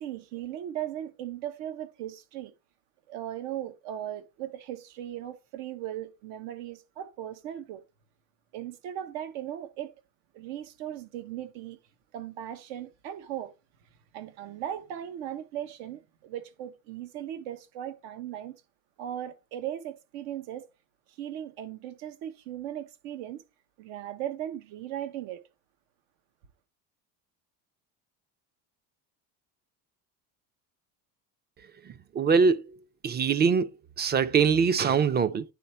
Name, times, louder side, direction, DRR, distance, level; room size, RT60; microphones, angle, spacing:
voice 1, 0.0-2.5 3.1-7.8 8.5-9.9 10.3-11.8 12.1-13.5 14.1-18.6 19.0-20.7 21.2-23.4 23.8-25.4, right 11 dB, 80° right, 1.1 m, -37 dB
voice 2, 32.1-32.6 33.0-33.7 34.0-35.4, right 5 dB, 25° right, 0.4 m, -22 dB
9.8 x 3.3 x 4.3 m
supercardioid pair, 110°, 42 cm